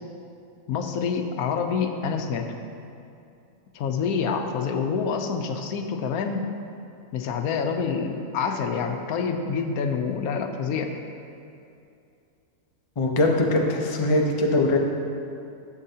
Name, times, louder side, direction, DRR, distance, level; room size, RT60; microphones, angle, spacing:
voice 1, 0.7-2.5 3.7-6.5 7.1-10.9, left 6 dB, 80° left, 5 dB, 1.1 m, -27 dB
voice 2, 13.0-14.8, left 2 dB, 40° left, 1 dB, 0.4 m, -21 dB
11.0 x 6.9 x 2.8 m, 2.6 s
omnidirectional pair, 1.6 m